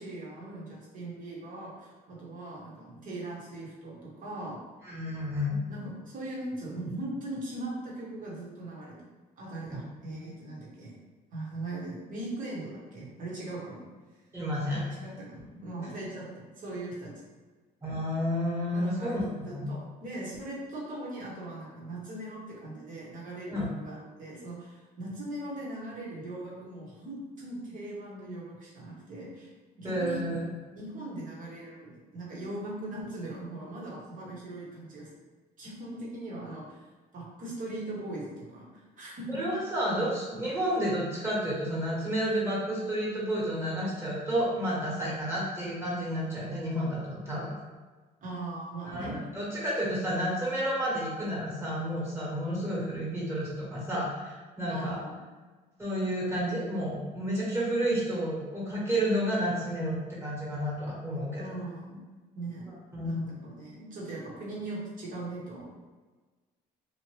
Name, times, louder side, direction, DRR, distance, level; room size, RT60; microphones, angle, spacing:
voice 1, 0.0-4.6 5.7-8.9 9.4-10.9 11.3-13.8 14.7-17.1 18.7-19.1 19.4-29.5 29.8-30.2 30.7-35.1 35.6-36.9 37.1-39.4 48.2-49.2 54.7-55.2 61.4-62.0 62.3-62.6 63.0-65.7, right 2 dB, 50° right, -5 dB, 1.2 m, -40 dB
voice 2, 4.8-5.6 9.7-9.8 10.1-10.3 14.3-14.8 17.8-19.7 23.5-23.7 29.8-30.5 39.3-47.5 48.8-55.0 55.8-61.4 62.9-63.2, equal, 15° right, -6 dB, 1.3 m, -31 dB
2.8 x 2.4 x 3.1 m, 1.3 s
cardioid pair, 110°, 17 cm